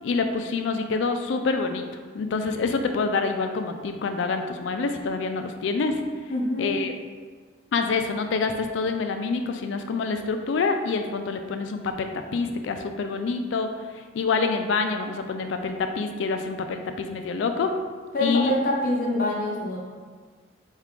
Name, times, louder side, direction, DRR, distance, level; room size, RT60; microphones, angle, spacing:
voice 1, 0.0-6.0 6.6-6.9 7.7-13.7 14.1-17.7 18.2-18.5, left 4 dB, 75° left, 6 dB, 0.4 m, -26 dB
voice 2, 6.3-6.8 18.1-19.8, left 1 dB, 50° left, -4 dB, 0.8 m, -25 dB
4.6 x 2.4 x 3.6 m, 1.5 s
head